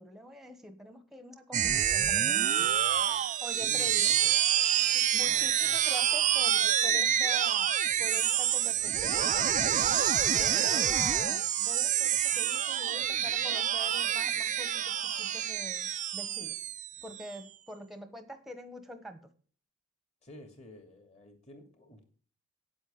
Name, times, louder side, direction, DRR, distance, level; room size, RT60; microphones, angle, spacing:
voice 1, 0.0-3.1 3.4-4.1 4.9-10.0 10.3-16.6 17.0-19.3, equal, ahead, 9 dB, 1.2 m, -45 dB
sound 1, 1.5-17.3, right 10 dB, 35° right, 0.5 m, -27 dB
voice 2, 3.6-4.3 5.2-5.8 20.2-22.0, left 1 dB, 30° left, 5 dB, 2.6 m, -50 dB
8.9 x 8.3 x 8.7 m, 0.43 s
head